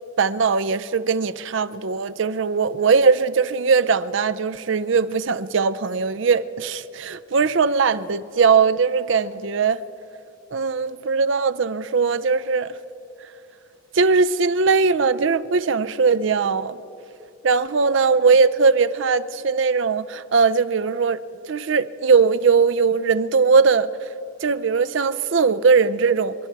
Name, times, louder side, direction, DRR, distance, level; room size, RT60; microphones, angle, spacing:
voice 1, 0.2-9.8 10.5-12.7 13.9-16.8 17.4-21.2 21.5-23.9 24.4-26.3, right 5 dB, 65° right, 0.5 m, -20 dB
26.5 x 11.5 x 4.6 m
head